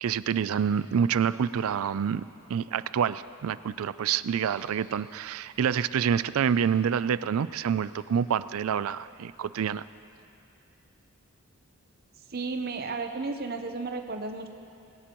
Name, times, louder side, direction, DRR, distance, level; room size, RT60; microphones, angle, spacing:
voice 1, 0.0-2.2 2.5-9.8, right 7 dB, 75° right, 16 dB, 0.4 m, -27 dB
voice 2, 12.3-14.5, right 3 dB, 45° right, 5 dB, 0.8 m, -33 dB
21.5 x 17.0 x 3.0 m, 2.6 s
head